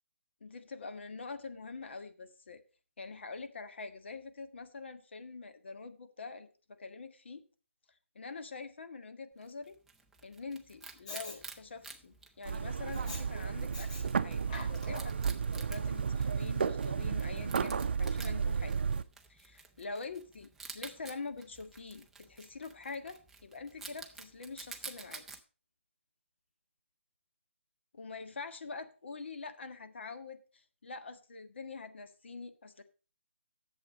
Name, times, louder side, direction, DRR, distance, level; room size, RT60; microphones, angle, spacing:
voice 1, 0.4-2.6 3.0-7.4 8.1-9.8 10.2-18.8 19.3-25.4 27.9-32.8, left 4 dB, 60° left, 8 dB, 1.7 m, -45 dB
Wild animals, 9.4-25.4, right 4 dB, 5° right, 0.5 m, -51 dB
Respiratory sounds, 11.1-11.4 12.9-13.2 13.7-14.0 14.4-15.2 15.8-15.9, left 2 dB, 35° left, 4.6 m, -44 dB
sound 1, 12.4-19.0, right 6 dB, 55° right, 0.6 m, -33 dB
11.0 x 7.6 x 5.1 m, 0.37 s
hypercardioid pair, 170°, 7 cm